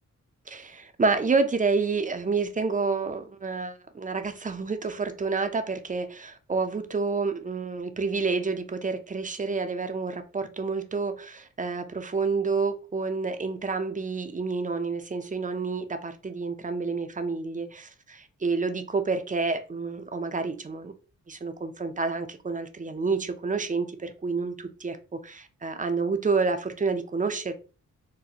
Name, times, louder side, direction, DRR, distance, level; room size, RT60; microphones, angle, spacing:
voice 1, 0.5-20.9 21.3-27.5, right 4 dB, 25° right, 8 dB, 0.5 m, -29 dB
4.0 x 2.1 x 2.7 m, 0.33 s
cardioid pair, 80°, 32 cm